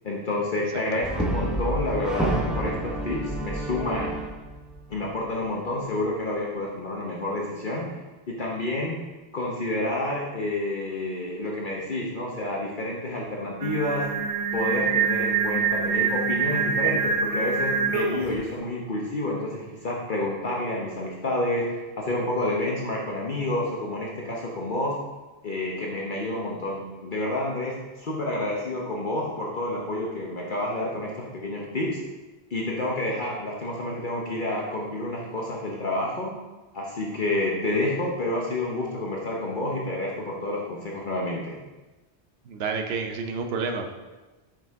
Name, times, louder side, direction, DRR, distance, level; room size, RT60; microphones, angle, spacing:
voice 1, 0.0-4.2 4.9-7.9 8.3-9.0 9.3-14.1 14.5-25.0 25.4-32.0 32.5-36.3 36.7-41.6, left 1 dB, 50° left, -3 dB, 1.0 m, -29 dB
Brass instrument, 1.0-5.3, right 1 dB, ahead, 0.6 m, -29 dB
Singing, 13.6-18.4, right 5 dB, 85° right, 1.2 m, -25 dB
voice 2, 42.4-43.9, right 5 dB, 70° right, 5 dB, 0.9 m, -30 dB
5.9 x 5.1 x 4.6 m, 1.2 s
omnidirectional pair, 1.1 m